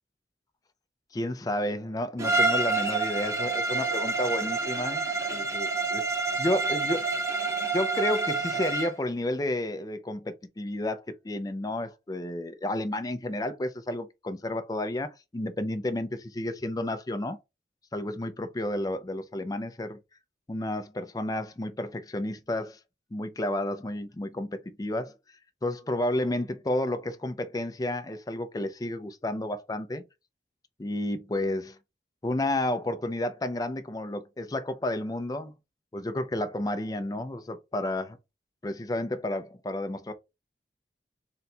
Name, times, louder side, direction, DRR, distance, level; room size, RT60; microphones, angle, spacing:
voice 1, 1.1-7.1 7.7-17.4 17.9-20.0 20.5-22.8 23.1-25.2 25.6-30.0 30.8-31.8 32.2-35.5 35.9-38.2 38.6-40.1, left 1 dB, 20° left, 0.4 m, -31 dB
Bowed string instrument, 2.2-9.0, right 3 dB, 15° right, 0.8 m, -28 dB
3.9 x 2.2 x 4.1 m
head